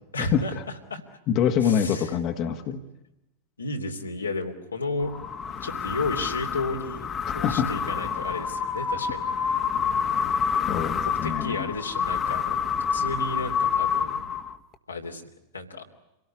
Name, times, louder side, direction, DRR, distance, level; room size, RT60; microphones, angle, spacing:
voice 1, 0.1-1.0 1.6-2.2 2.7-2.8 3.6-5.1 5.5-7.1 7.3-9.3 10.2-10.5 11.0-14.2 14.9-15.2 15.5-15.8, left 3 dB, 85° left, 2 dB, 3.0 m, -33 dB
voice 2, 1.3-2.8 7.4-7.7 10.7-11.7, left 8 dB, 45° left, 6 dB, 1.8 m, -25 dB
sound 1, 5.0-14.7, left 6 dB, 30° left, 1.6 m, -28 dB
27.0 x 18.0 x 9.9 m, 0.92 s
figure-of-eight pair, 90°, 0 cm